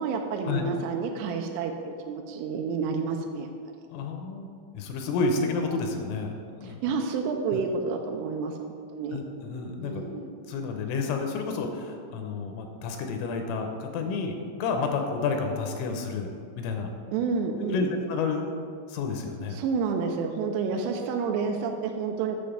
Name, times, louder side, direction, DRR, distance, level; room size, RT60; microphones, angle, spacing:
voice 1, 0.0-3.5 6.6-9.2 9.8-10.3 17.1-17.9 19.5-22.4, right 5 dB, 80° right, 3 dB, 3.0 m, -29 dB
voice 2, 3.9-6.4 6.6-7.0 7.5-7.6 9.1-10.0 10.5-16.9 17.7-18.5 18.9-19.6, left 4 dB, 85° left, 4 dB, 3.2 m, -30 dB
8.8 x 7.3 x 5.0 m, 2.3 s
omnidirectional pair, 6.0 m